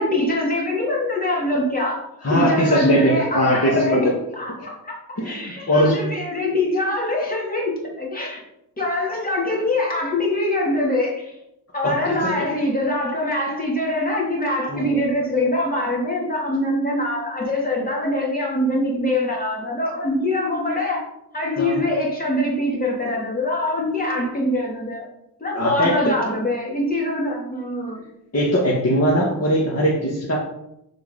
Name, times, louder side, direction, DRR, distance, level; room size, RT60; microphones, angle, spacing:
voice 1, 0.0-2.0 2.3-4.1 4.4-5.0 5.2-7.7 8.0-8.4 8.8-11.3 11.7-21.1 21.3-25.1 25.4-28.1, left 1 dB, 20° left, -3 dB, 2.8 m, -23 dB
voice 2, 2.2-4.1 5.2-6.1 11.8-12.4 14.7-14.9 21.6-21.8 25.5-26.1 28.3-30.4, equal, 35° left, -5 dB, 1.8 m, -20 dB
7.6 x 4.6 x 5.4 m, 0.82 s
wide cardioid pair, 115°, 40 cm